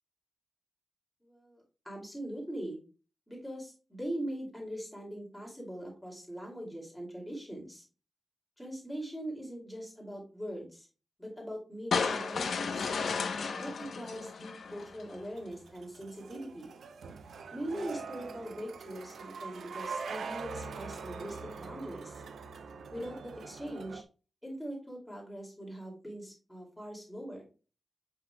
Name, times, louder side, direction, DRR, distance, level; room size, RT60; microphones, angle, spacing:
voice 1, 1.2-2.8 3.3-7.8 8.6-10.9 11.2-12.8 13.5-16.7 17.5-22.2 22.9-24.0 24.4-27.4, right 1 dB, 5° left, -2 dB, 2.5 m, -41 dB
sound 1, 11.9-15.2, left 5 dB, 70° left, 0.8 m, -33 dB
sound 2, 14.7-24.0, right 5 dB, 90° right, 0.5 m, -43 dB
7.6 x 5.6 x 2.2 m, 0.34 s
wide cardioid pair, 170°, 0 cm